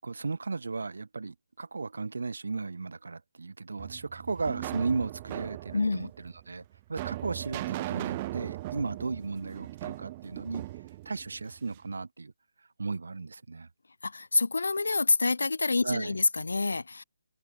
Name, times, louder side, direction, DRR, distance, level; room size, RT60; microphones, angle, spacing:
voice 1, 0.0-6.6 6.9-10.6 11.0-12.3 12.8-13.7 15.8-16.1, right 4 dB, 70° right, 5.1 m, -35 dB
sound 1, 3.8-11.9, right 17 dB, 30° right, 7.8 m, -38 dB
voice 2, 5.7-6.1 14.0-17.0, left 3 dB, 75° left, 2.1 m, -27 dB
open air
figure-of-eight pair, 150°, 0 cm